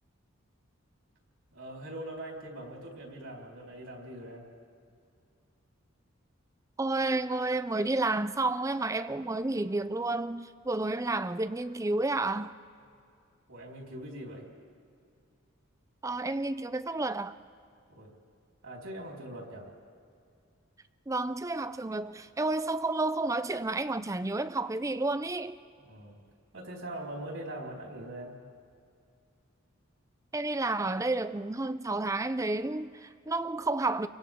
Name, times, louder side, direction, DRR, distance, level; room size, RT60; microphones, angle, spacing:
voice 1, 1.5-4.5 13.5-14.4 17.9-18.1 18.6-19.7 25.8-26.2 26.5-28.4, right 1 dB, 70° right, 4.3 m, -42 dB
voice 2, 6.8-12.5 16.0-17.4 21.1-25.5 30.3-34.1, right 2 dB, 15° right, 0.4 m, -31 dB
30.0 x 24.0 x 3.7 m
head